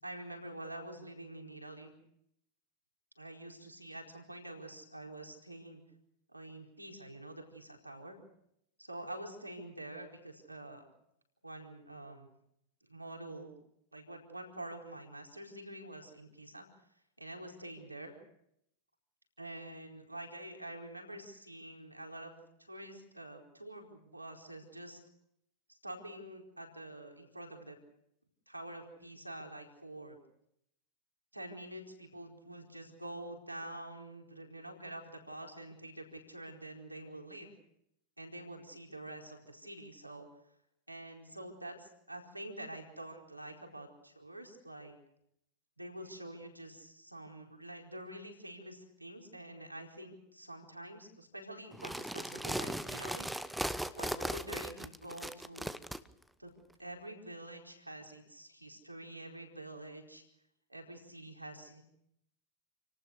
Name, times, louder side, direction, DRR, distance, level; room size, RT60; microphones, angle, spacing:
voice 1, 0.0-1.9 3.2-5.8 6.3-8.2 8.8-10.9 11.4-12.3 12.9-13.5 13.9-16.7 17.2-18.1 19.4-22.3 22.6-25.0 25.7-27.8 28.5-30.2 31.3-37.5 38.2-40.3 40.9-44.9 45.8-53.3 53.9-55.7 56.4-56.5 56.8-60.2 60.7-61.8, right 1 dB, 85° right, 2 dB, 4.5 m, -47 dB
sound 1, 51.7-56.0, right 1 dB, ahead, 1.0 m, -38 dB
29.0 x 19.0 x 6.6 m, 0.76 s
figure-of-eight pair, 90°, 0 cm